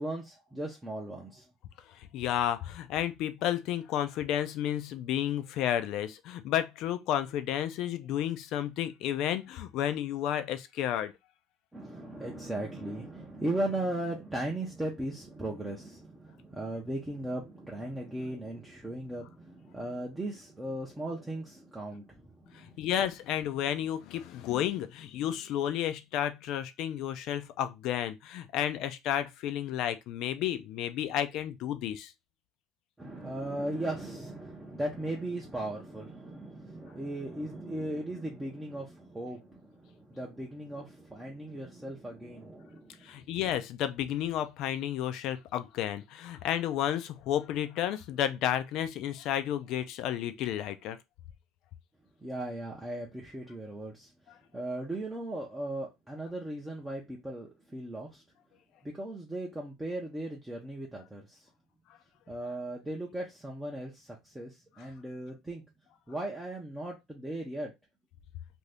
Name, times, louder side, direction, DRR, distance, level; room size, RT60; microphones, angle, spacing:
voice 1, 0.0-1.4 11.7-22.8 33.0-43.2 52.2-54.1 54.5-58.2 58.8-61.4 62.3-64.5 64.8-65.6 66.1-67.7, right 1 dB, 5° right, 0.5 m, -37 dB
voice 2, 2.0-11.1 22.5-32.1 43.0-51.0 64.8-64.9, left 11 dB, 50° left, 0.4 m, -32 dB
2.7 x 2.6 x 3.3 m
cardioid pair, 160°, 0 cm